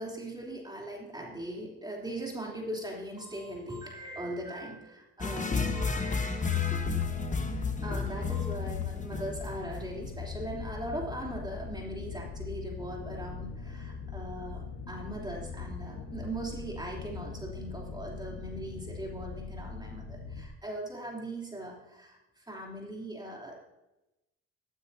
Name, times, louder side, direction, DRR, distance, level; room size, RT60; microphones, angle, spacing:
voice 1, 0.0-7.0 7.5-23.7, right 1 dB, 15° right, -2 dB, 3.4 m, -40 dB
sound 1, 5.2-10.2, left 5 dB, 25° left, 1.2 m, -31 dB
sound 2, 6.5-20.4, left 5 dB, 85° left, 1.5 m, -41 dB
16.0 x 9.5 x 2.8 m, 0.95 s
cardioid pair, 90°, 30 cm